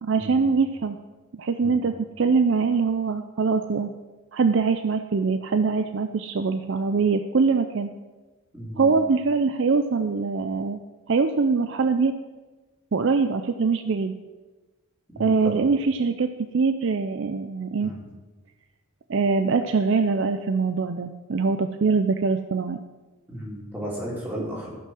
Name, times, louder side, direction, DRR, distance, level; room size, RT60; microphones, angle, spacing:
voice 1, 0.0-1.0 1.4-3.9 4.3-7.9 8.8-10.8 11.1-12.1 12.9-14.1 15.2-17.9 19.1-22.8, right 4 dB, 55° right, 9 dB, 0.4 m, -23 dB
voice 2, 8.5-9.0 15.1-15.6 17.8-18.0 23.3-24.7, equal, 10° right, -5 dB, 2.9 m, -34 dB
14.5 x 5.6 x 6.2 m, 1.3 s
head